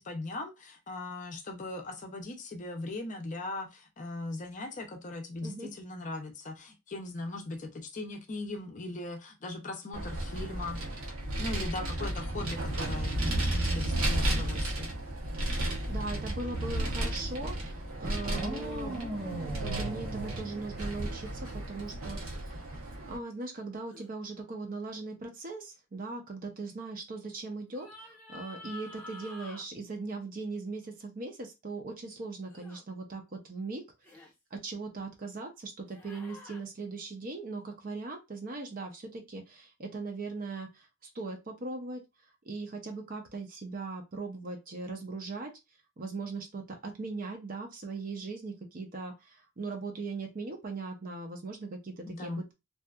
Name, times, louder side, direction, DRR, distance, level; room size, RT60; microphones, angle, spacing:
voice 1, 0.0-10.8 11.4-14.9 52.1-52.4, left 2 dB, 35° left, 0.5 m, -39 dB
Vehicle, 9.9-23.2, right 1 dB, 80° right, 0.8 m, -33 dB
voice 2, 15.6-18.9 19.4-33.8 34.1-42.0 42.4-45.5 46.0-52.5, right 3 dB, 40° right, 0.5 m, -39 dB
sound 1, 18.2-21.4, right 2 dB, 65° right, 1.1 m, -39 dB
sound 2, 23.9-24.1 27.7-29.6 32.5-32.8 34.0-34.3 35.9-36.6, left 2 dB, 5° left, 0.7 m, -48 dB
2.7 x 2.3 x 2.3 m
head